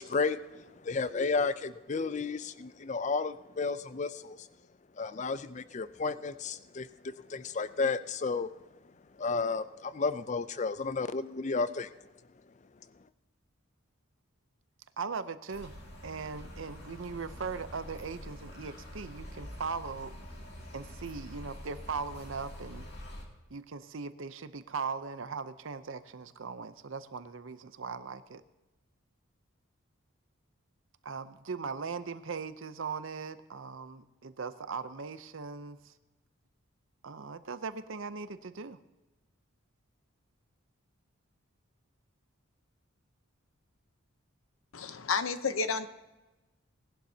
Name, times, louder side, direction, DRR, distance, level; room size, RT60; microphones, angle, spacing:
voice 1, 0.0-4.5 5.0-8.6 9.2-11.9, left 4 dB, 35° left, 14 dB, 0.4 m, -32 dB
voice 2, 15.0-15.7 16.0-20.1 20.7-22.9 23.5-28.4 31.0-35.9 37.0-38.8, right 5 dB, 65° right, 12 dB, 0.6 m, -39 dB
sound 1, 15.5-23.2, equal, 50° left, 2.5 m, -46 dB
voice 3, 44.7-45.9, left 5 dB, 70° left, 10 dB, 0.8 m, -31 dB
19.0 x 11.5 x 2.8 m, 1.1 s
head